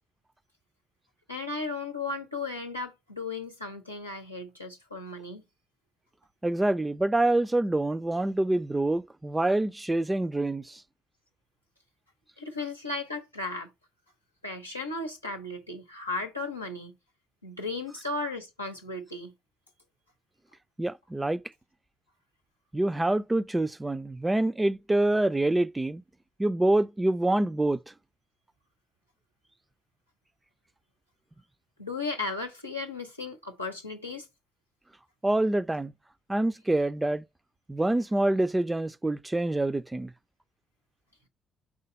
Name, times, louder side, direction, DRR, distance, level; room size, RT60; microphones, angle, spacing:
voice 1, 1.3-5.4 12.4-13.7 14.4-17.0 17.4-19.3 31.8-34.3, left 3 dB, 90° left, 0.7 m, -35 dB
voice 2, 6.4-10.8 20.8-21.4 22.7-26.0 26.4-27.8 35.2-35.9 36.3-37.2 37.7-40.1, right 2 dB, 15° right, 0.4 m, -26 dB
5.0 x 3.9 x 5.2 m
figure-of-eight pair, 45°, 0 cm